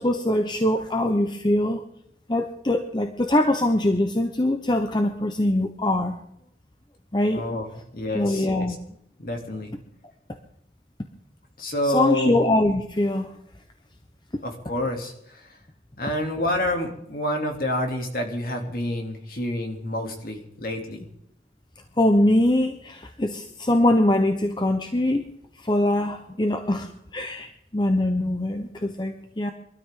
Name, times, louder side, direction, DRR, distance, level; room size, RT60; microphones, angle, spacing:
voice 1, 0.0-1.8 2.3-6.2 7.1-7.4 8.1-8.8 11.9-13.3 22.0-25.3 25.6-29.5, left 1 dB, 25° left, 6 dB, 0.9 m, -23 dB
voice 2, 7.3-7.7 7.9-8.7 9.2-9.7 11.6-12.4 14.4-15.5 16.0-21.0, left 1 dB, 55° left, 2 dB, 3.0 m, -28 dB
23.0 x 13.0 x 3.8 m, 0.74 s
head